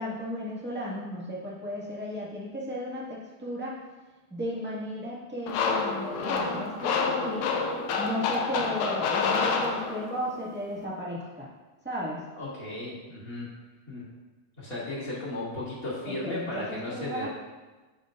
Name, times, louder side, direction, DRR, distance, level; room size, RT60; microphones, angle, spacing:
voice 1, 0.0-3.8 4.3-7.5 8.0-11.5 11.8-12.2 16.1-17.3, equal, 5° right, -7 dB, 1.0 m, -35 dB
sound 1, 5.5-10.3, left 4 dB, 85° left, 2.2 m, -28 dB
voice 2, 12.3-13.5 13.9-14.1 14.6-17.3, left 2 dB, 30° left, -8 dB, 2.5 m, -35 dB
10.5 x 6.9 x 2.5 m, 1.2 s
omnidirectional pair, 3.4 m